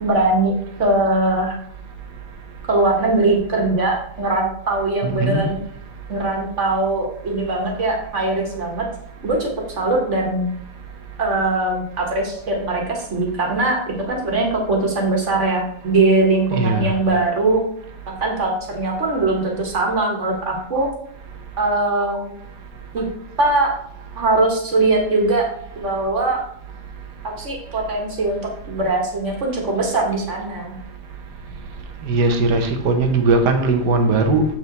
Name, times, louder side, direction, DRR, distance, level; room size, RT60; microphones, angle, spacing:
voice 1, 0.0-1.6 2.7-5.6 6.1-8.8 9.2-9.5 9.8-10.5 11.2-17.6 18.1-20.9 21.6-22.3 22.9-23.0 23.4-23.7 24.2-25.5 25.8-26.4 27.2-30.7, right 2 dB, 45° right, 0 dB, 1.7 m, -21 dB
voice 2, 5.0-5.4 16.5-16.9 32.0-34.4, right 3 dB, 90° right, 5 dB, 1.6 m, -18 dB
7.2 x 4.7 x 4.0 m, 0.67 s
omnidirectional pair, 1.8 m